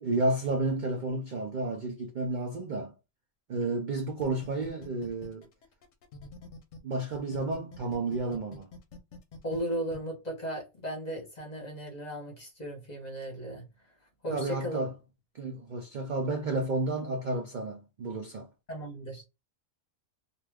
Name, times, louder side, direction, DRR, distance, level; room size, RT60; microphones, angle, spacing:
voice 1, 0.0-2.9 3.5-5.5 6.8-8.7 14.3-14.9 15.3-18.5, right 2 dB, 55° right, 0.5 m, -31 dB
sound 1, 4.2-6.8 7.1-10.0, left 3 dB, 65° left, 0.9 m, -46 dB
voice 2, 9.4-13.6 14.2-14.8 18.7-19.2, right 1 dB, 35° left, 0.9 m, -36 dB
2.5 x 2.3 x 3.2 m
omnidirectional pair, 1.4 m